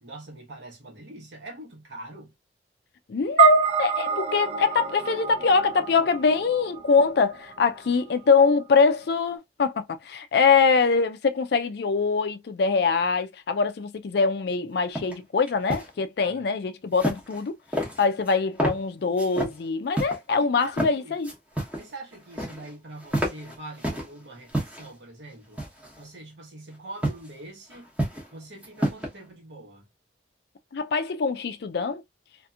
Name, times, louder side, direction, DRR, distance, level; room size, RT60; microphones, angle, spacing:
voice 1, 0.0-2.3 16.2-16.4 20.6-21.2 21.8-25.6 26.0-27.9 28.3-29.9, right 2 dB, 70° right, 1.1 m, -43 dB
voice 2, 3.1-17.6 18.0-21.3 30.7-32.0, left 4 dB, 55° left, 0.4 m, -23 dB
sound 1, 3.4-7.9, right 8 dB, 35° right, 0.4 m, -26 dB
sound 2, 14.9-15.1 15.5-15.9 16.9-17.4 17.7-18.3 18.6-18.8 19.2-19.5 19.9-20.2 20.6-20.9 21.2-21.9 22.1-22.7 23.0-24.1 24.5-24.9 25.6-26.0 27.0-27.3 27.7-28.3 28.6-29.1, right 1 dB, 10° right, 0.9 m, -29 dB
2.8 x 2.5 x 2.3 m
head